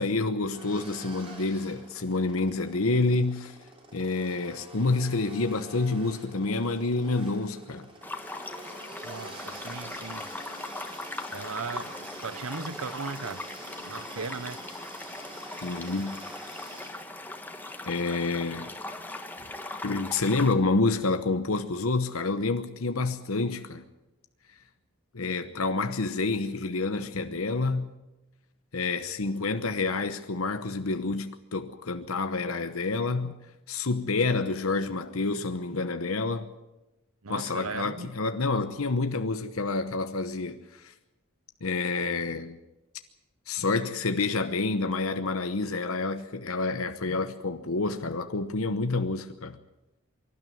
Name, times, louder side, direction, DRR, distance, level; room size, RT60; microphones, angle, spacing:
voice 1, 0.0-3.6 3.9-7.9 15.6-16.2 17.9-18.7 19.8-23.8 25.1-27.9 28.7-33.3 33.7-36.5 37.3-40.9 41.6-42.6 43.5-49.6, left 3 dB, 75° left, 1.0 m, -28 dB
sound 1, 0.5-16.9, right 1 dB, 25° right, 3.5 m, -47 dB
sound 2, 8.0-20.5, left 2 dB, 10° left, 1.4 m, -40 dB
voice 2, 9.0-10.3 11.3-13.5 13.8-14.6 19.4-19.5 37.2-38.1, right 4 dB, 75° right, 0.9 m, -37 dB
24.5 x 12.5 x 9.3 m
head